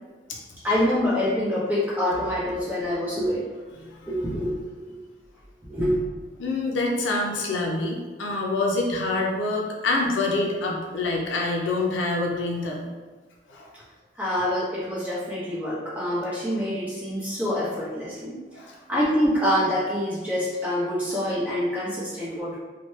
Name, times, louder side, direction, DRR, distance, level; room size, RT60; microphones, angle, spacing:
voice 1, 0.6-3.4 4.1-4.8 5.6-6.0 14.2-18.4 18.9-22.6, equal, 10° right, -9 dB, 0.9 m, -26 dB
voice 2, 6.4-12.9 13.5-13.7 18.5-18.7, left 2 dB, 70° left, -1 dB, 0.5 m, -26 dB
2.9 x 2.2 x 3.1 m, 1.3 s
head